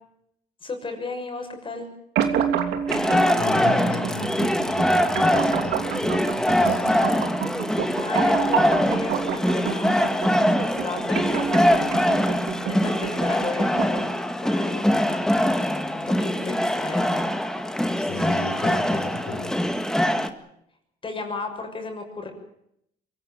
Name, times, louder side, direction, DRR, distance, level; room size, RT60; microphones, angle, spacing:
voice 1, 0.6-1.9 8.0-11.9 12.7-17.2 21.0-22.3, left 3 dB, 30° left, 5 dB, 6.6 m, -34 dB
sound 1, 2.2-14.2, right 8 dB, 80° right, 3.1 m, -29 dB
sound 2, 2.9-20.3, equal, 5° left, 1.9 m, -23 dB
voice 2, 3.3-7.1 18.0-19.5, left 4 dB, 60° left, 10 dB, 4.9 m, -35 dB
24.0 x 17.5 x 9.2 m, 0.75 s
cardioid pair, 110°, 17 cm